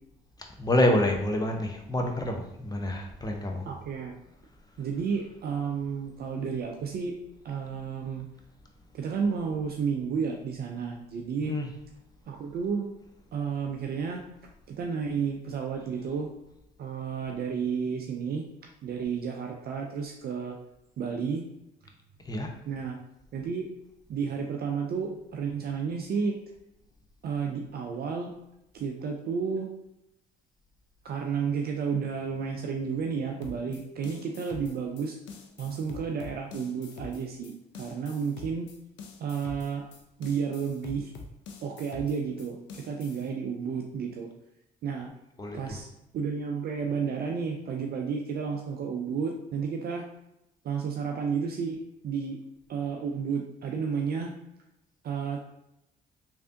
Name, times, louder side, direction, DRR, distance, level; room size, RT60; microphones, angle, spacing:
voice 1, 0.6-3.7 11.4-11.7 22.2-22.5 45.4-45.8, left 1 dB, 20° left, 2 dB, 0.7 m, -27 dB
voice 2, 3.7-4.1 4.8-7.1 7.4-8.3 8.9-11.6 12.3-12.9 13.3-14.2 14.7-16.3 16.8-18.4 18.8-20.6 21.0-21.4 22.7-23.0 23.3-23.7 24.1-26.4 27.2-28.3 28.7-29.7 31.0-35.2 35.6-38.7 39.2-39.8 40.2-41.1 41.6-44.3 44.8-45.1 45.5-45.9 46.1-50.0 50.6-51.8 52.0-52.4 52.7-54.3 55.0-55.4, right 6 dB, 50° right, 2 dB, 0.4 m, -31 dB
sound 1, 33.4-43.3, left 4 dB, 70° left, 0.5 m, -45 dB
3.2 x 2.6 x 2.5 m, 0.85 s
supercardioid pair, 55°, 20 cm